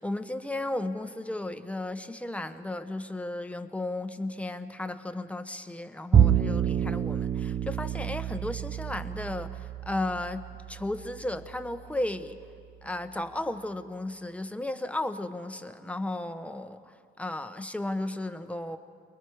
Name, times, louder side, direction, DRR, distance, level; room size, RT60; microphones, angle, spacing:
voice 1, 0.0-12.4 12.8-18.8, left 1 dB, 5° left, 8 dB, 1.1 m, -34 dB
Bowed string instrument, 6.1-12.6, right 8 dB, 40° right, 0.7 m, -28 dB
29.0 x 22.0 x 5.0 m, 2.5 s
cardioid pair, 90°, 20 cm